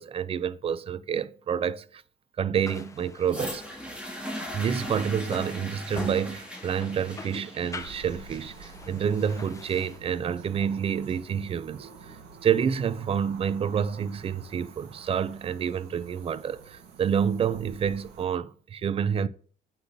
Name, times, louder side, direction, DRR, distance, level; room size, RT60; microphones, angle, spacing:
voice 1, 0.0-2.0 2.4-3.6 4.5-12.2 12.4-19.3, right 7 dB, 35° right, 0.4 m, -28 dB
sound 1, 2.6-10.0, left 3 dB, 20° left, 0.7 m, -45 dB
sound 2, 3.3-11.3 12.1-12.2, equal, 5° right, 1.9 m, -40 dB
sound 3, 7.8-18.3, right 5 dB, 80° right, 1.4 m, -49 dB
8.0 x 5.4 x 2.7 m
cardioid pair, 110°, 17 cm